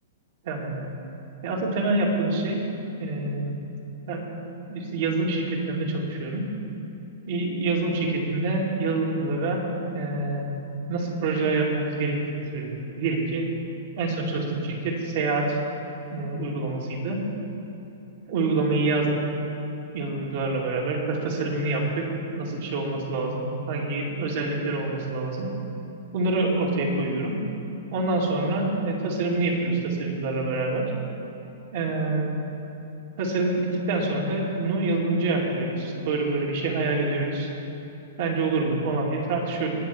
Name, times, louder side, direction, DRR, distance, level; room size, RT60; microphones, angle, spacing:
voice 1, 0.4-0.8 1.4-2.6 3.0-3.6 4.1-4.3 4.7-6.5 7.3-9.7 9.9-10.5 10.9-13.5 14.0-15.6 16.1-17.2 18.3-19.2 19.9-22.1 22.4-25.5 26.1-27.4 27.9-30.8 31.7-32.3 33.2-37.5 38.2-39.7, right 2 dB, 55° right, -1 dB, 2.3 m, -26 dB
19.5 x 6.7 x 4.4 m, 3.0 s
hypercardioid pair, 150°, 0 cm